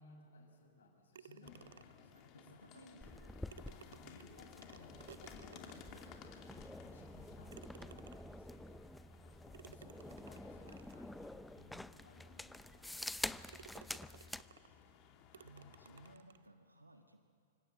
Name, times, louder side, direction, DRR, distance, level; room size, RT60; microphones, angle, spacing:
voice 1, 0.0-3.2 3.7-8.9 9.6-12.7, left 3 dB, 70° left, 3 dB, 5.9 m, -61 dB
sound 1, 1.1-2.1 3.2-3.3 3.5-6.1 6.7-6.8 7.5-8.5 9.5-11.1 11.8-11.9 12.4-12.5 13.0-13.2 13.5-14.8 15.3-16.5, right 8 dB, 65° right, 0.7 m, -59 dB
sound 2, 1.4-16.1, left 7 dB, 35° left, 2.8 m, -59 dB
voice 2, 2.3-3.3 15.3-17.2, right 1 dB, 90° right, 6 dB, 1.4 m, -60 dB
sound 3, 3.0-14.5, left 1 dB, 5° left, 0.6 m, -48 dB
27.0 x 25.0 x 7.6 m, 2.5 s
figure-of-eight pair, 105°, 0 cm